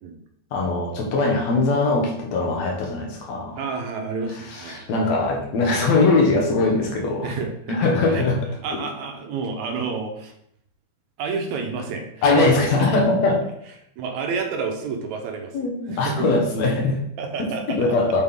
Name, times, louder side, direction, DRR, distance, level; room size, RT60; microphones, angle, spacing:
voice 1, 0.5-3.6 4.7-7.3 7.7-8.4 8.7-8.8 12.2-13.4 15.5-17.0 17.7-18.2, left 3 dB, 65° left, 0 dB, 2.3 m, -21 dB
voice 2, 3.6-4.9 7.2-7.8 8.1-8.3 8.6-10.3 11.2-12.6 14.0-16.4 17.2-18.0, right 4 dB, 75° right, 4 dB, 2.1 m, -30 dB
7.3 x 4.3 x 3.6 m, 0.72 s
omnidirectional pair, 3.5 m